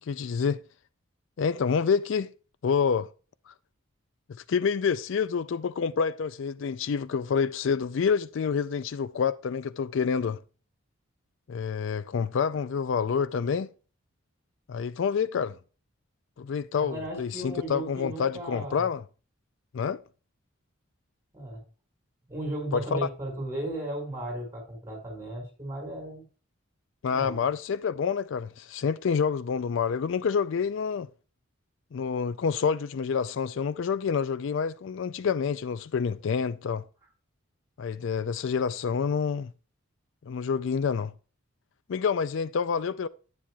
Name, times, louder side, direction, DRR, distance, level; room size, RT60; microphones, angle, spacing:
voice 1, 0.0-0.6 1.4-2.3 2.6-3.1 3.5-3.6 4.3-10.4 11.5-13.7 14.7-15.6 16.4-19.0 19.7-20.0 22.7-23.0 27.0-31.1 31.9-36.8 37.8-39.5 40.3-41.1 41.9-43.1, left 6 dB, 65° left, 0.4 m, -28 dB
voice 2, 16.8-18.8 21.3-21.6 22.3-26.2 27.1-27.4, right 1 dB, 10° right, 4.8 m, -35 dB
10.0 x 9.8 x 2.3 m
head